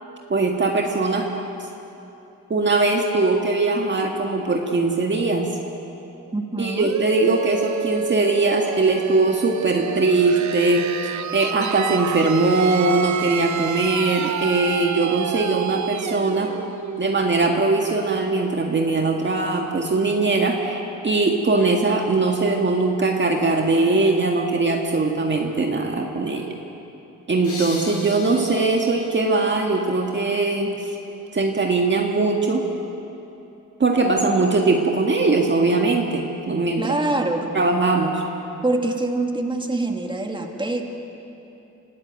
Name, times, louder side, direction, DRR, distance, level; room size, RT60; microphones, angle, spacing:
voice 1, 0.3-1.3 2.5-5.6 6.6-16.5 17.0-26.5 27.3-30.9 31.3-32.7 33.8-37.0 37.5-38.2, right 3 dB, 35° right, 1 dB, 1.8 m, -21 dB
voice 2, 6.3-6.9 36.8-37.5 38.6-40.8, right 2 dB, 15° right, 3 dB, 2.3 m, -24 dB
sound 1, 6.8-18.3, right 9 dB, 60° right, 0.8 m, -30 dB
sound 2, 27.4-30.2, left 2 dB, 45° left, 6.4 m, -38 dB
26.0 x 13.5 x 9.3 m, 2.9 s
cardioid pair, 80°, 32 cm